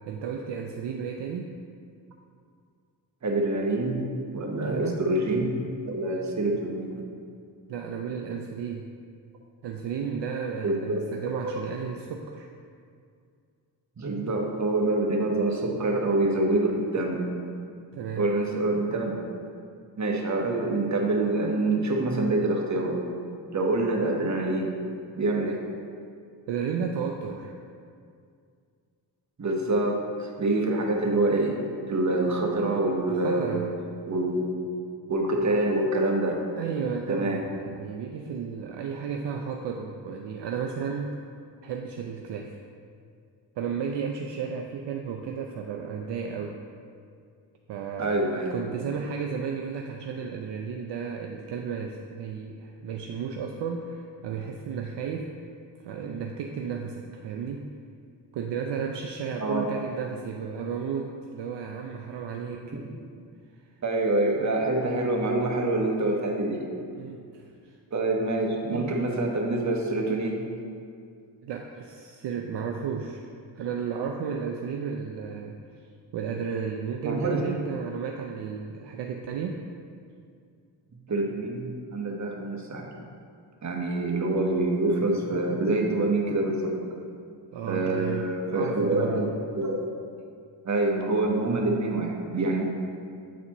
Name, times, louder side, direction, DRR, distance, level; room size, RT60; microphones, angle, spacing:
voice 1, 0.1-1.6 4.6-5.0 7.7-8.9 9.6-12.5 17.9-18.3 26.5-27.5 33.1-33.7 36.6-41.2 41.6-42.6 43.6-46.6 47.7-48.2 48.5-55.3 55.8-57.7 58.3-62.8 66.9-67.5 68.6-68.9 71.4-73.2 73.6-75.6 76.1-79.7 87.5-89.3, right 6 dB, 65° right, 2 dB, 0.5 m, -33 dB
voice 2, 3.2-4.0 4.3-5.5 5.9-7.0 10.6-11.0 11.4-11.5 14.0-17.2 18.2-19.2 20.0-23.0 23.5-24.7 25.2-25.6 29.4-31.5 31.9-33.6 34.1-34.5 35.1-36.4 37.1-37.4 48.0-48.5 59.4-59.7 63.8-66.6 67.9-70.4 77.0-77.4 81.1-82.9 83.6-86.7 87.7-89.8 90.6-92.6, right 2 dB, 35° right, 0 dB, 1.0 m, -26 dB
8.3 x 4.1 x 3.0 m, 2.3 s
cardioid pair, 70°, 46 cm